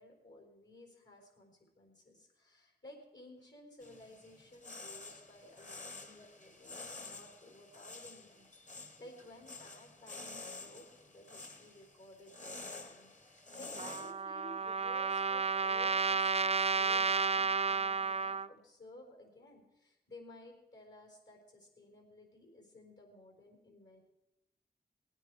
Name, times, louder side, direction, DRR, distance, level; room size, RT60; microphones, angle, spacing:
voice 1, 0.0-24.0, left 1 dB, 70° left, 2 dB, 4.4 m, -56 dB
sound 1, 3.8-14.1, left 3 dB, 40° left, 1.3 m, -49 dB
Trumpet, 13.8-18.5, right 5 dB, 35° right, 0.4 m, -32 dB
19.0 x 9.2 x 4.9 m, 0.95 s
cardioid pair, 40°, 19 cm